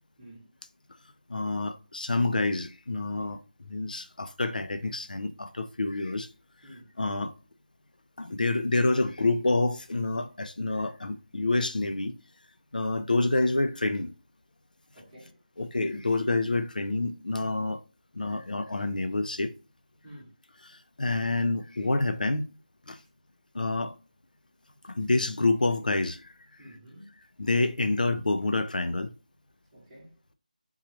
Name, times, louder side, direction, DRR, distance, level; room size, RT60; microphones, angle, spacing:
voice 1, 0.2-0.5 6.6-6.9 14.9-15.4 20.0-20.4 26.6-27.1 29.7-30.1, equal, 5° right, 1.0 m, -50 dB
voice 2, 1.3-3.4 3.7-6.3 7.0-7.3 8.2-12.2 12.7-14.1 15.6-17.8 18.1-19.5 20.7-22.4 22.9-23.0 23.5-24.0 24.8-26.3 27.4-29.1, left 2 dB, 85° left, 0.6 m, -28 dB
3.7 x 3.1 x 2.9 m
figure-of-eight pair, 180°, 4 cm